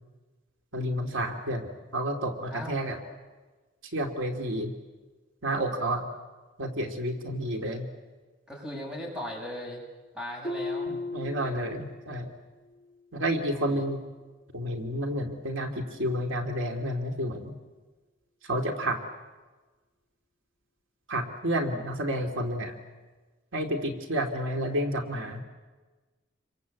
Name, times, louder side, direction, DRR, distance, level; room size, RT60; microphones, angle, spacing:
voice 1, 0.7-3.0 3.8-4.7 5.4-6.1 6.6-7.9 10.9-12.3 13.1-14.0 14.5-17.5 18.4-19.0 21.1-22.8 23.5-25.4, right 1 dB, 80° right, 4 dB, 2.6 m, -30 dB
voice 2, 2.5-2.8 8.5-9.8 10.1-10.9 13.5-13.8, left 1 dB, 5° right, 0 dB, 7.4 m, -38 dB
Harp, 10.4-12.2 12.6-13.0 13.5-13.6, left 2 dB, 20° left, 5.8 m, -36 dB
28.5 x 24.0 x 8.4 m, 1.3 s
head